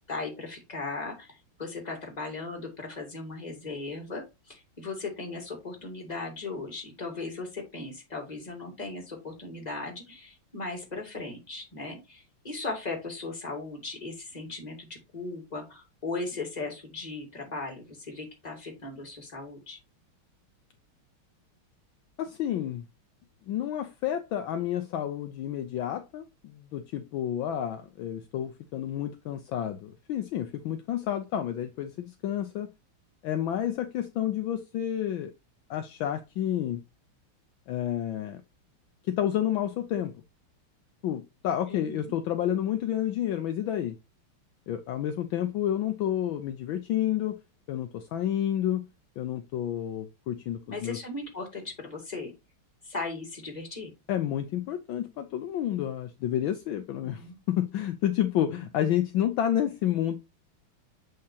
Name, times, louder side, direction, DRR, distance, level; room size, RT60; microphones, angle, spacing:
voice 1, 0.1-19.8 41.7-42.1 50.7-52.3 52.8-53.9 57.0-57.4 58.4-58.5, left 3 dB, 20° left, 2.6 m, -37 dB
voice 2, 22.2-22.8 23.5-32.7 33.2-35.3 35.7-36.8 37.7-38.4 39.1-40.1 41.0-44.0 44.7-47.4 47.7-48.9 49.2-51.0 54.1-60.2, left 11 dB, 70° left, 1.4 m, -30 dB
7.6 x 5.6 x 2.8 m
omnidirectional pair, 2.4 m